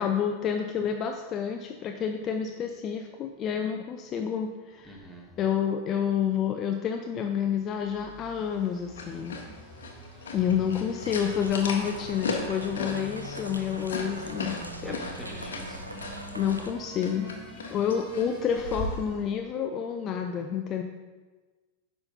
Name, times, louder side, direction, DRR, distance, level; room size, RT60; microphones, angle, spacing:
voice 1, 0.0-5.0 5.4-9.3 10.3-14.6 14.8-15.5 16.3-17.3 17.7-20.8, left 8 dB, 30° left, 4 dB, 0.4 m, -29 dB
voice 2, 4.9-5.3 14.2-16.0, right 1 dB, ahead, -2 dB, 1.5 m, -44 dB
sound 1, 7.2-19.4, right 1 dB, 30° right, 1.6 m, -47 dB
sound 2, 8.9-19.0, left 3 dB, 65° left, 0.9 m, -38 dB
sound 3, 11.0-16.7, right 1 dB, 85° right, 0.5 m, -41 dB
9.5 x 5.6 x 2.7 m, 1.3 s
figure-of-eight pair, 90°, 0 cm